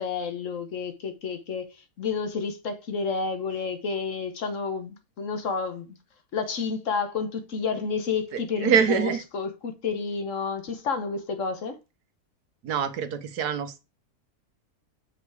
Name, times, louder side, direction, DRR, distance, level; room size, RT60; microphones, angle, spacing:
voice 1, 0.0-6.0 6.3-11.8, left 5 dB, 55° left, 1.2 m, -30 dB
voice 2, 8.3-9.2 12.6-13.8, right 7 dB, 85° right, 1.5 m, -25 dB
5.8 x 5.1 x 4.7 m
omnidirectional pair, 1.6 m